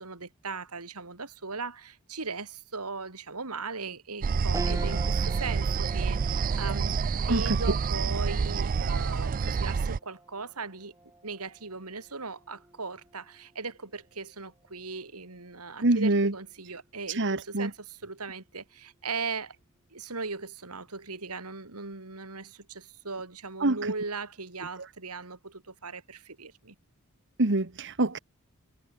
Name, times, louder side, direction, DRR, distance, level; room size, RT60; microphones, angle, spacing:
voice 1, 0.0-10.9 11.2-19.5 19.9-26.7, right 4 dB, 85° right, 3.2 m, -38 dB
sound 1, 4.2-10.0, right 5 dB, 40° right, 0.4 m, -28 dB
sound 2, 4.5-14.1 14.6-14.7 16.0-16.5, right 1 dB, 15° right, 5.0 m, -45 dB
voice 2, 7.3-7.6 15.8-16.3 17.1-17.7 23.6-23.8 24.8-24.9 27.4-28.2, right 2 dB, 55° right, 1.5 m, -25 dB
head